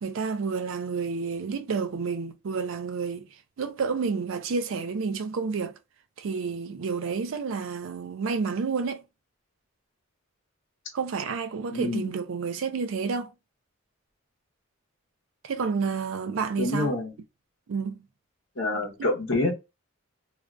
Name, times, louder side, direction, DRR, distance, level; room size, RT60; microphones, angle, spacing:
voice 1, 0.0-3.3 3.6-5.8 6.2-9.0 10.9-13.3 15.4-16.9 17.7-18.0 19.0-19.1, right 5 dB, 70° right, 0.4 m, -30 dB
voice 2, 11.7-12.1 16.6-17.1 18.6-19.5, left 2 dB, 60° left, 0.9 m, -27 dB
2.4 x 2.2 x 2.4 m
head